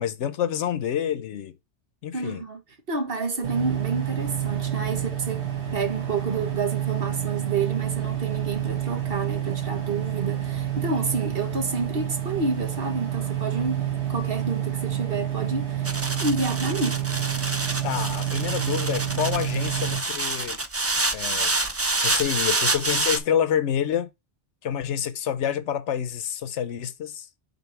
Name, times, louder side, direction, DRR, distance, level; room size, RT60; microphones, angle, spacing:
voice 1, 0.0-1.5 2.0-2.4 17.8-20.6 21.1-21.5 22.0-24.1 24.6-27.3, left 9 dB, 85° left, 1.0 m, -27 dB
voice 2, 2.1-2.6 2.9-15.9 16.2-17.1, right 3 dB, 55° right, 1.5 m, -29 dB
sound 1, 3.4-20.0, right 11 dB, 70° right, 1.8 m, -28 dB
sound 2, 15.8-23.2, right 2 dB, 20° right, 0.4 m, -27 dB
5.6 x 3.8 x 5.8 m
omnidirectional pair, 1.2 m